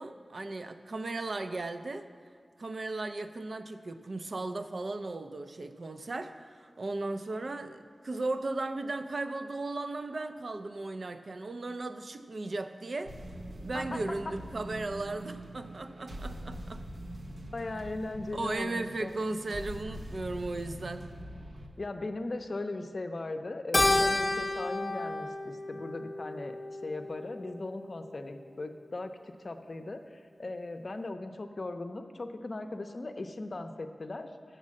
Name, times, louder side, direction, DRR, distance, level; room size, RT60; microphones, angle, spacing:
voice 1, 0.0-2.1 2.6-13.1 13.6-16.8 18.3-21.1, right 2 dB, 60° right, 9 dB, 0.5 m, -36 dB
sound 1, 13.0-21.7, right 1 dB, 90° right, 0.8 m, -43 dB
voice 2, 13.7-14.3 17.5-19.1 21.8-26.6 26.8-29.1 29.4-34.3, left 2 dB, 50° left, 7 dB, 0.6 m, -38 dB
Keyboard (musical), 23.7-28.3, left 2 dB, 30° left, 1.0 m, -31 dB
7.4 x 6.6 x 7.4 m, 2.2 s
wide cardioid pair, 80°, 0 cm